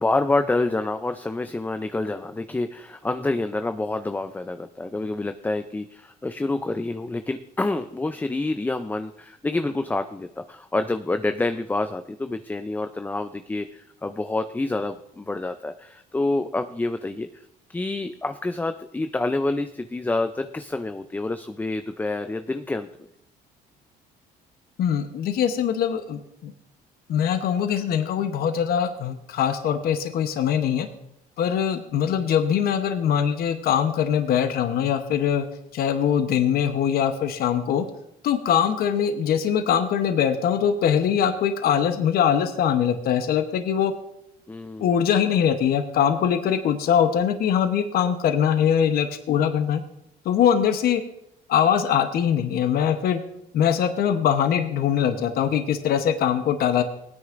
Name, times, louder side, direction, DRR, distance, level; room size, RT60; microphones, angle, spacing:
voice 1, 0.0-17.3 17.7-22.9 44.5-44.9, left 2 dB, 10° left, 8 dB, 0.4 m, -27 dB
voice 2, 24.8-26.5 27.1-30.9 31.4-35.5 35.7-37.9 38.2-43.9 44.8-49.8 50.2-51.0 51.5-53.2 53.5-56.8, left 8 dB, 65° left, 7 dB, 0.9 m, -22 dB
18.5 x 9.5 x 2.5 m, 0.77 s
cardioid pair, 110°, 17 cm